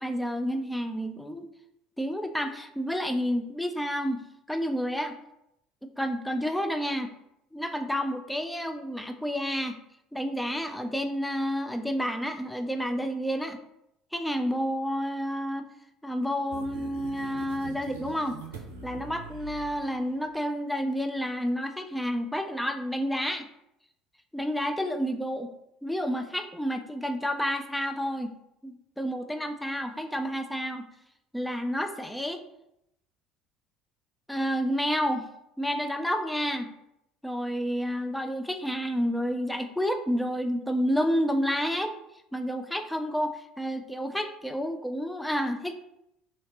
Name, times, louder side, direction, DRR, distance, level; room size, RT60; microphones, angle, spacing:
voice 1, 0.0-1.5 2.0-4.2 4.5-5.2 6.0-7.1 7.5-9.8 10.1-13.6 14.1-15.7 16.0-18.4 18.8-23.5 24.3-25.5 25.8-28.3 28.6-30.9 31.3-32.4 34.3-35.3 35.6-36.7 37.2-41.9 42.3-45.7, equal, 5° left, 7 dB, 0.3 m, -30 dB
sound 1, 16.5-20.2, right 2 dB, 75° right, 0.5 m, -43 dB
2.8 x 2.8 x 2.9 m, 0.81 s
figure-of-eight pair, 60°, 0 cm